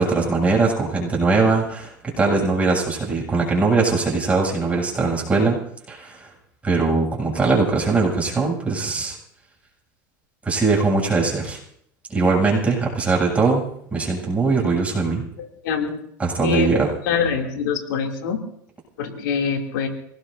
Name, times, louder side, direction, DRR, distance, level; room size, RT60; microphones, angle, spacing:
voice 1, 0.0-5.6 5.9-6.3 6.6-9.2 10.4-11.6 12.1-13.6 13.9-15.2 16.2-16.9, right 3 dB, 15° right, -2 dB, 8.0 m, -21 dB
voice 2, 15.6-16.0 16.4-16.7 17.1-18.4 19.0-19.9, left 6 dB, 75° left, 2 dB, 2.9 m, -24 dB
26.5 x 19.0 x 2.7 m, 0.70 s
supercardioid pair, 115°, 10 cm